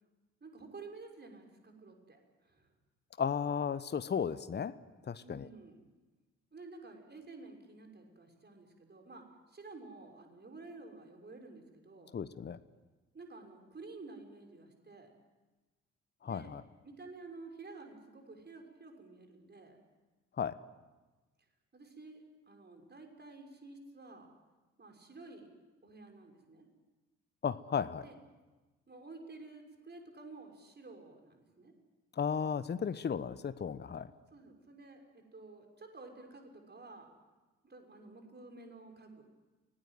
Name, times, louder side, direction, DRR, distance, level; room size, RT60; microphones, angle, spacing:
voice 1, 0.4-2.7 5.2-5.8 6.5-12.1 13.1-15.1 16.3-16.5 16.8-19.8 21.7-24.3 24.8-25.5 25.8-26.7 28.0-28.2 28.9-31.7 34.3-37.1 37.6-39.2, right 3 dB, 30° right, 3 dB, 6.3 m, -51 dB
voice 2, 3.2-4.7 5.1-5.5 12.1-12.6 16.2-16.6 20.4-20.5 27.4-28.0 32.2-34.1, left 7 dB, 30° left, 15 dB, 1.1 m, -34 dB
30.0 x 19.5 x 7.8 m, 1.2 s
figure-of-eight pair, 45°, 35 cm